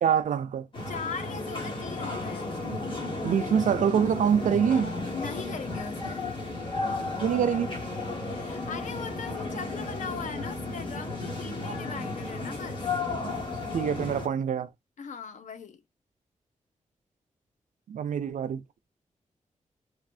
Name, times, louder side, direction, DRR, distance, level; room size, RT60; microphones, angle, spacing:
voice 1, 0.0-0.7 3.2-4.9 7.2-7.7 13.7-14.7 17.9-18.6, right 8 dB, 90° right, 0.5 m, -25 dB
sound 1, 0.7-14.3, left 2 dB, 40° left, 1.3 m, -34 dB
voice 2, 0.9-2.5 5.1-6.6 8.2-12.8 15.0-15.8, left 6 dB, 75° left, 0.6 m, -39 dB
3.2 x 2.4 x 2.6 m
wide cardioid pair, 145°, 13 cm